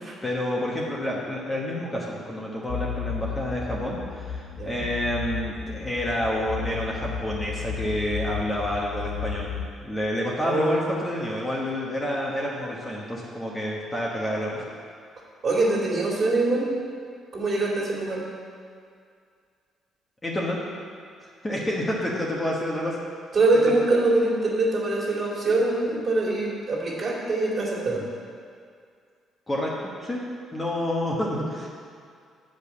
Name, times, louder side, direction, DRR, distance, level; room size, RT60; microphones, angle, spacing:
voice 1, 0.2-9.5 9.8-14.6 20.2-20.6 21.4-23.0 23.7-23.8 29.5-30.2 30.5-31.7, left 1 dB, 15° left, -4 dB, 1.2 m, -29 dB
sound 1, 2.7-9.8, left 7 dB, 75° left, 0.7 m, -34 dB
voice 2, 10.4-11.0 15.4-16.7 17.3-18.3 23.3-28.1, right 2 dB, 35° right, -6 dB, 2.4 m, -23 dB
7.8 x 5.2 x 7.0 m, 2.2 s
cardioid pair, 130°, 0 cm